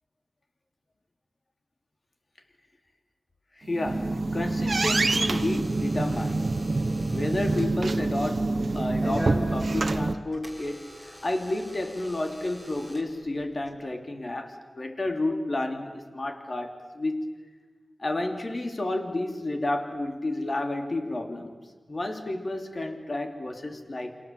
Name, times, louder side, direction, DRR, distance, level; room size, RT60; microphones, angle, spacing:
voice 1, 3.6-6.5 7.1-17.2 18.0-21.6 21.9-24.2, left 2 dB, 45° left, 5 dB, 2.9 m, -31 dB
sound 1, 3.6-10.1, right 2 dB, 55° right, 1.2 m, -26 dB
Door / Alarm, 4.5-13.7, equal, 15° left, 5.1 m, -43 dB
28.5 x 26.0 x 7.5 m, 1.4 s
wide cardioid pair, 95°, 0 cm